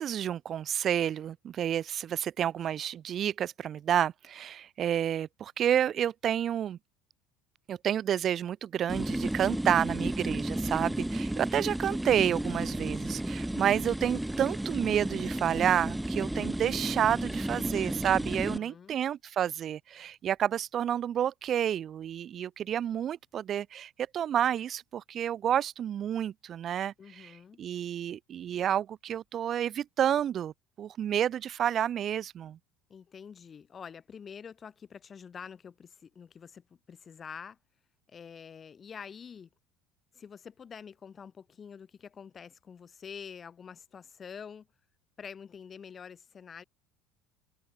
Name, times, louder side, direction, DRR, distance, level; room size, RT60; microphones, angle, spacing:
voice 1, 0.0-6.8 7.7-27.3 27.6-30.5 30.8-32.6, right 10 dB, 40° right, 0.4 m, -30 dB
sound 1, 8.9-18.6, right 1 dB, 5° right, 1.3 m, -33 dB
voice 2, 18.3-19.0 27.0-27.6 32.9-37.6 38.1-39.5 40.1-44.7 45.2-46.6, left 7 dB, 30° left, 2.6 m, -47 dB
supercardioid pair, 125°, 0 cm